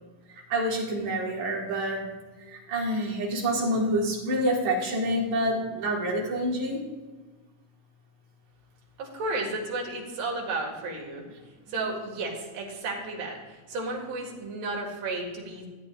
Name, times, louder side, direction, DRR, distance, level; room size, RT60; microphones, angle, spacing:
voice 1, 0.3-2.1 2.4-6.8, equal, 60° right, -3 dB, 3.4 m, -27 dB
voice 2, 9.0-11.2 11.7-15.7, right 2 dB, 75° right, -1 dB, 3.6 m, -33 dB
15.5 x 9.0 x 2.5 m, 1.3 s
omnidirectional pair, 3.8 m